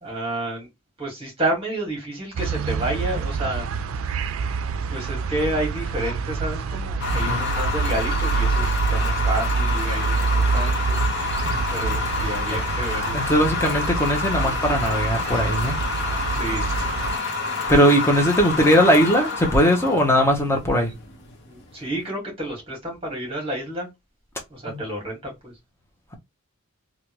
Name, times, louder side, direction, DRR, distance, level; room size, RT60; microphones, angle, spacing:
voice 1, 0.0-0.7 1.0-3.7 4.9-11.0 11.7-13.3 16.3-16.7 21.5-23.9 24.5-25.5, right 1 dB, 25° right, 1.8 m, -30 dB
sound 1, 2.3-17.2, right 5 dB, 70° right, 0.4 m, -26 dB
sound 2, 7.0-21.9, left 3 dB, 55° left, 1.0 m, -28 dB
voice 2, 13.1-15.8 17.7-20.9 24.7-24.8, equal, 10° left, 0.9 m, -19 dB
3.3 x 2.5 x 3.0 m
head